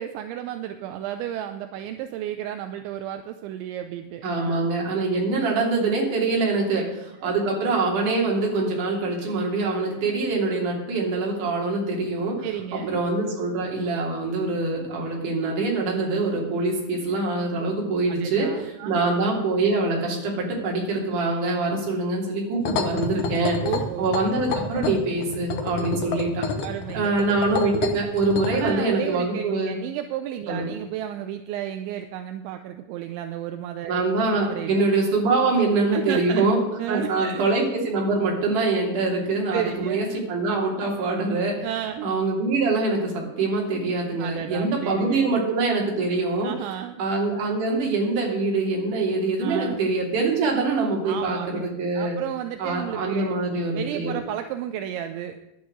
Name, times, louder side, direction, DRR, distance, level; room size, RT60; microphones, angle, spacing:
voice 1, 0.0-4.7 7.2-7.3 12.4-13.0 18.1-19.2 23.6-24.1 26.6-27.3 28.5-34.0 34.3-34.9 35.9-36.5 36.8-37.5 39.5-40.0 41.6-42.1 44.2-45.3 46.4-47.0 49.4-49.8 51.0-51.7 51.9-53.4 53.7-55.4, right 11 dB, 80° right, 7 dB, 2.8 m, -32 dB
voice 2, 4.2-6.8 7.2-12.5 12.7-18.5 18.9-23.6 24.0-26.5 26.9-29.8 30.5-30.7 33.9-36.6 36.9-41.7 42.0-46.5 47.0-52.2 52.6-54.1, right 3 dB, 45° right, -2 dB, 4.0 m, -24 dB
sound 1, 22.6-28.7, left 5 dB, 85° left, 1.8 m, -29 dB
11.5 x 9.4 x 8.0 m, 0.94 s
omnidirectional pair, 5.7 m